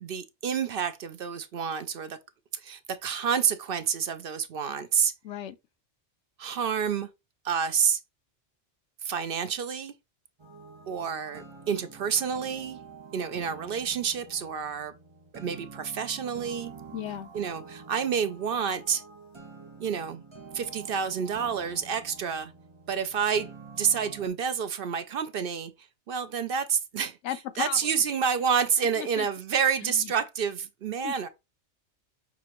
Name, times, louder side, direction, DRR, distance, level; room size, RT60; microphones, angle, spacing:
voice 1, 0.0-2.2 2.6-5.1 6.4-7.1 7.4-8.0 9.0-9.9 10.9-12.8 13.1-14.9 15.3-16.7 17.3-19.0 19.8-20.2 20.5-22.5 22.9-25.7 26.1-27.2 27.6-31.3, right 7 dB, 60° right, 0.7 m, -29 dB
voice 2, 5.2-5.6 16.9-17.3 27.2-27.9 29.0-29.3 29.8-30.1 31.0-31.1, left 12 dB, 85° left, 0.9 m, -36 dB
sound 1, 10.4-24.3, right 5 dB, 25° right, 0.8 m, -47 dB
6.1 x 2.9 x 2.9 m
omnidirectional pair, 1.2 m